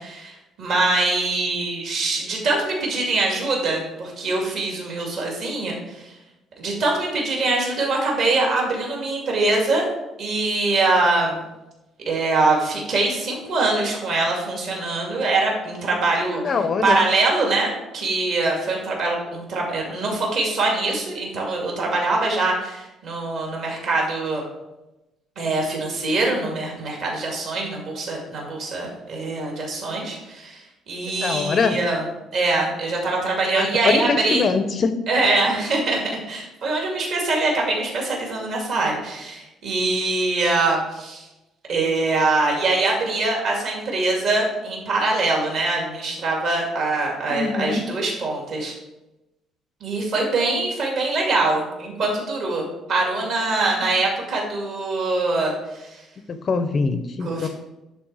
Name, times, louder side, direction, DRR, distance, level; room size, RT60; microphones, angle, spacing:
voice 1, 0.0-6.1 6.6-9.9 10.2-11.4 12.1-16.4 16.8-24.4 25.4-32.0 32.3-34.5 35.1-36.0 36.3-41.3 41.7-48.7 49.8-56.0 57.2-57.5, right 2 dB, 50° right, -1 dB, 2.3 m, -23 dB
voice 2, 16.4-17.0 31.2-31.8 33.5-34.9 47.3-47.8 56.3-57.5, left 4 dB, 30° left, 9 dB, 0.5 m, -23 dB
10.5 x 4.1 x 4.7 m, 0.98 s
cardioid pair, 175°, 0 cm